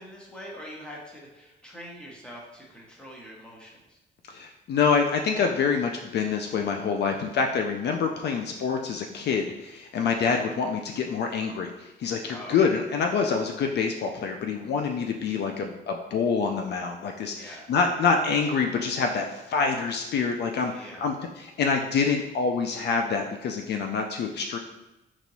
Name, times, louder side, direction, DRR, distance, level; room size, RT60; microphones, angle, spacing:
voice 1, 0.0-4.0 12.3-12.6 17.3-17.7 20.6-21.1, equal, 5° left, -4 dB, 1.1 m, -44 dB
voice 2, 4.3-24.6, left 5 dB, 60° left, 3 dB, 0.4 m, -26 dB
4.4 x 2.9 x 2.7 m, 0.97 s
cardioid pair, 90°, 20 cm